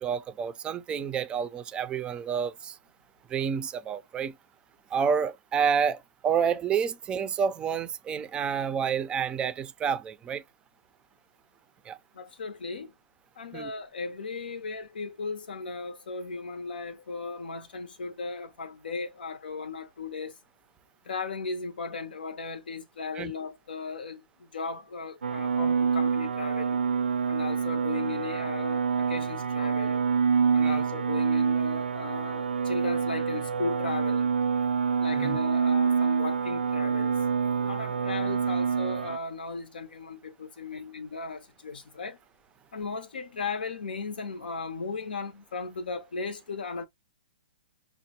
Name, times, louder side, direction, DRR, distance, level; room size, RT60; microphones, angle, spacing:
voice 1, 0.0-2.8 3.3-4.4 4.9-10.4 11.9-12.0 13.5-13.7 23.1-23.3 30.6-30.8 35.1-35.4, right 7 dB, 20° right, 0.4 m, -29 dB
voice 2, 12.2-12.9 13.4-20.3 21.1-24.2 24.5-26.8 27.3-30.1 30.5-34.3 35.0-37.2 37.6-42.2 42.7-46.9, left 4 dB, 75° left, 0.6 m, -36 dB
sound 1, 25.2-39.2, right 6 dB, 85° right, 0.3 m, -27 dB
5.7 x 2.1 x 2.8 m
hypercardioid pair, 125°, 5 cm